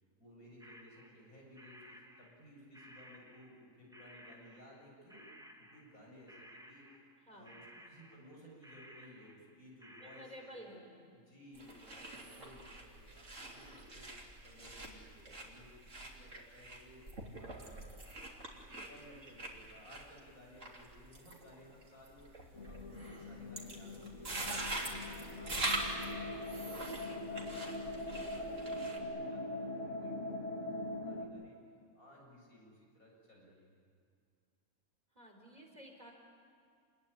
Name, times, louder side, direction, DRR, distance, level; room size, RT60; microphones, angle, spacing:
voice 1, 0.2-5.3 5.6-10.7 11.1-17.0 17.4-17.9 18.5-30.3 30.6-31.6 31.9-33.7, left 1 dB, 70° left, -2 dB, 8.1 m, -58 dB
sound 1, 0.6-3.6 3.9-4.8 5.1-6.0 6.3-10.7, equal, ahead, 1.9 m, -57 dB
voice 2, 7.2-7.7 10.0-11.0 28.5-29.0 35.1-36.1, equal, 25° right, 1 dB, 4.3 m, -53 dB
sound 2, 11.5-29.0, right 2 dB, 55° right, 3.6 m, -44 dB
sound 3, 22.5-31.3, left 1 dB, 50° left, 2.9 m, -42 dB
28.5 x 21.0 x 10.0 m, 2.2 s
omnidirectional pair, 1.6 m